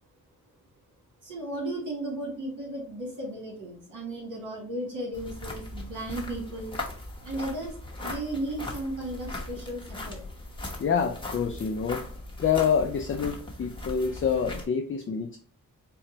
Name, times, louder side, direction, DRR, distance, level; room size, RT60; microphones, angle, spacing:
voice 1, 1.2-6.8 7.2-10.2, right 1 dB, 65° right, -2 dB, 1.8 m, -35 dB
sound 1, 5.1-14.7, left 2 dB, 15° left, 1.0 m, -39 dB
voice 2, 10.8-12.0 12.4-15.4, left 7 dB, 40° left, 5 dB, 0.4 m, -27 dB
4.2 x 2.3 x 3.8 m, 0.41 s
wide cardioid pair, 120°, 33 cm